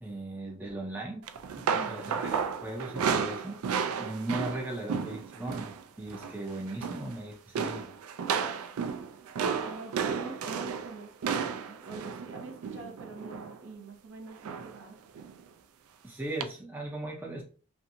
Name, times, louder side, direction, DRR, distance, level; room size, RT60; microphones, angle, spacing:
voice 1, 0.0-1.2 1.6-3.6 3.9-7.9 16.0-17.4, right 2 dB, 10° right, -2 dB, 0.4 m, -38 dB
sound 1, 1.3-5.8 6.1-6.4 6.7-7.2 7.6-13.6 14.4-14.8 15.2-15.3 16.4-16.5, right 6 dB, 90° right, 0.3 m, -33 dB
voice 2, 1.7-2.2 9.6-15.0, right 3 dB, 60° right, 2 dB, 0.7 m, -45 dB
2.6 x 2.4 x 2.6 m, 0.39 s
head